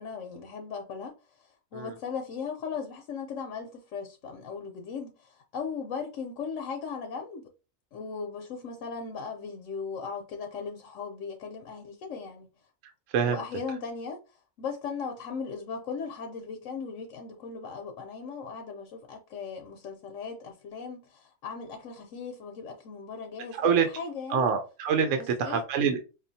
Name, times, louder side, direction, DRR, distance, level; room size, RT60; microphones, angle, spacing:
voice 1, 0.0-7.5 7.9-12.5 13.2-14.2 14.6-24.5 25.2-25.6, left 5 dB, 75° left, 1.0 m, -38 dB
voice 2, 24.3-26.0, right 6 dB, 75° right, 0.9 m, -25 dB
5.2 x 2.4 x 2.6 m
omnidirectional pair, 1.4 m